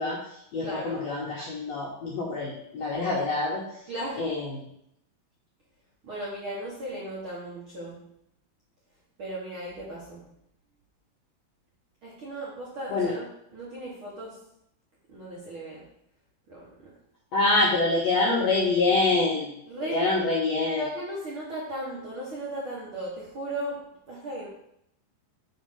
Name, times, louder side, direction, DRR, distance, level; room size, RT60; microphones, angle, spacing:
voice 1, 0.0-3.8 4.2-4.7 12.9-13.2 17.3-19.5 19.9-20.8, left 3 dB, 65° left, -5 dB, 1.7 m, -26 dB
voice 2, 0.6-1.0 3.9-4.2 6.0-8.1 9.2-10.2 12.0-13.2 13.5-14.4 15.1-15.8 16.5-16.9 19.7-20.3 20.7-23.8 24.1-24.5, right 1 dB, 55° right, -7 dB, 1.6 m, -36 dB
5.4 x 4.3 x 5.7 m, 0.74 s
omnidirectional pair, 4.3 m